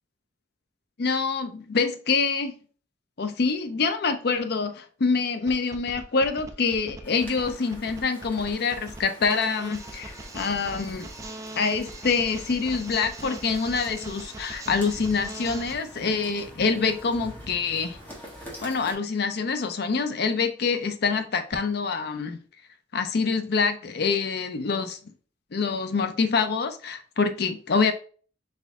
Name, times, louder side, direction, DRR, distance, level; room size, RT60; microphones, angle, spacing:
voice 1, 1.0-2.5 3.2-11.1 11.6-18.0 18.6-22.4 22.9-25.0 25.5-27.9, left 4 dB, 60° left, 0.5 m, -26 dB
sound 1, 5.5-15.7, right 2 dB, 15° right, 0.4 m, -40 dB
sound 2, 7.0-18.9, equal, 10° left, 1.3 m, -46 dB
4.2 x 2.6 x 3.4 m
head